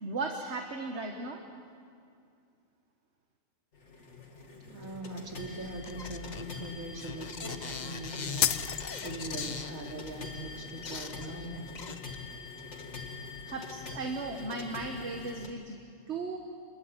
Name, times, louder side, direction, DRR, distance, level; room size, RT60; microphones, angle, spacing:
voice 1, 0.0-1.4 13.5-15.8 16.1-16.4, right 3 dB, 55° right, 3 dB, 1.8 m, -36 dB
sound 1, 3.7-15.5, left 4 dB, 55° left, 2.5 m, -44 dB
voice 2, 4.6-11.6, right 1 dB, 85° right, 1 dB, 3.4 m, -41 dB
sound 2, 5.8-9.9 10.5-10.6 10.8-12.5 12.8-12.9, left 5 dB, 35° left, 0.9 m, -41 dB
sound 3, 8.4-9.4, left 10 dB, 85° left, 1.2 m, -30 dB
27.5 x 21.5 x 9.0 m, 2.3 s
omnidirectional pair, 1.4 m